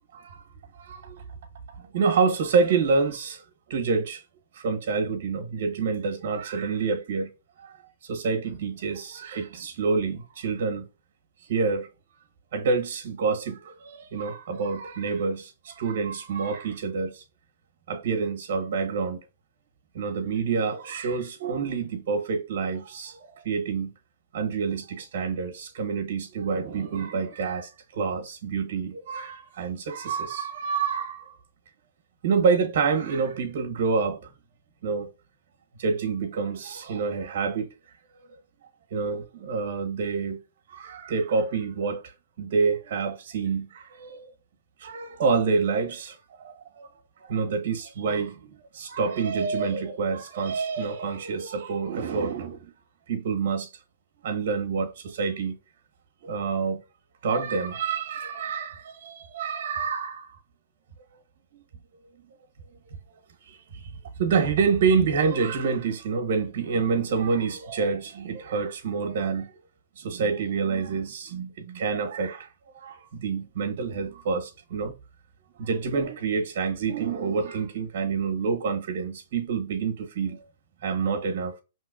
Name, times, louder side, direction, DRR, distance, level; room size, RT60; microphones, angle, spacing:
voice 1, 0.1-0.4 0.8-1.2 1.8-3.4 3.7-4.2 4.5-7.3 7.6-7.8 8.0-10.9 11.5-11.9 12.5-17.2 17.9-19.2 19.9-23.9 24.3-31.3 32.2-34.3 34.8-35.1 35.8-37.7 38.9-40.4 40.7-42.1 42.4-44.3 44.8-46.9 47.3-52.7 53.1-53.7 54.2-55.6 56.2-56.8 57.2-60.3 63.5-63.9 64.2-69.5 70.0-72.5 72.7-74.9 75.6-80.4 80.8-81.6, right 5 dB, 60° right, 1.1 m, -27 dB
5.3 x 3.1 x 2.4 m
hypercardioid pair, 135°, 0 cm